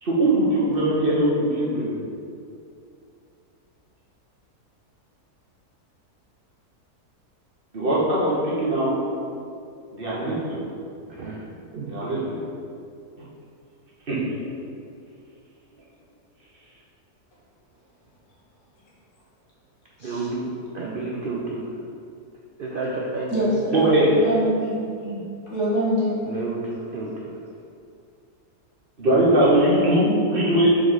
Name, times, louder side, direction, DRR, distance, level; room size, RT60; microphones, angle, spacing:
voice 1, 0.0-1.9 7.7-9.0 9.9-10.6 11.9-12.4 14.1-14.2 23.7-24.1 25.0-25.2 29.0-30.8, right 1 dB, 40° right, -7 dB, 1.3 m, -21 dB
voice 2, 11.1-11.4 11.7-11.9 20.0-21.7 22.6-23.8 26.3-27.3, right 2 dB, 85° right, -3 dB, 0.4 m, -30 dB
voice 3, 23.3-24.8 25.5-26.3, equal, 80° left, -8 dB, 2.2 m, -25 dB
5.1 x 4.7 x 4.0 m, 2.5 s
omnidirectional pair, 1.6 m